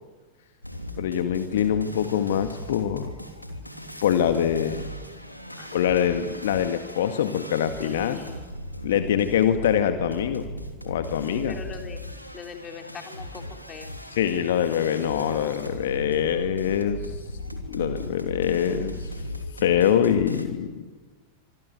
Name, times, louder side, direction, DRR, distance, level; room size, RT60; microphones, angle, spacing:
sound 1, 0.6-20.5, equal, 90° left, 3.1 m, -38 dB
voice 1, 1.0-3.1 4.0-4.9 5.7-8.2 8.8-10.5 10.8-11.6 14.1-17.2 17.7-19.1 19.5-20.8, left 9 dB, 60° left, 8 dB, 1.9 m, -24 dB
voice 2, 5.6-6.2 7.8-8.4 11.3-12.0 12.3-13.4 13.7-13.9, left 6 dB, 25° left, 5 dB, 3.8 m, -41 dB
25.5 x 24.5 x 9.5 m, 1.3 s
figure-of-eight pair, 90°, 0 cm